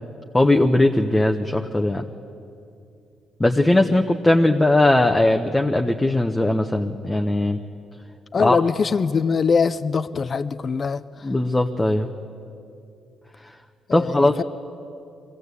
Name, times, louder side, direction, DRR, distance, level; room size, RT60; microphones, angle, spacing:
voice 1, 0.3-2.0 3.4-7.6 8.4-8.6 11.2-12.1 13.9-14.4, left 2 dB, 15° left, 0.9 m, -19 dB
voice 2, 8.3-11.3 13.9-14.4, left 5 dB, 40° left, 0.5 m, -23 dB
22.5 x 15.5 x 8.3 m
cardioid pair, 90°, 0 cm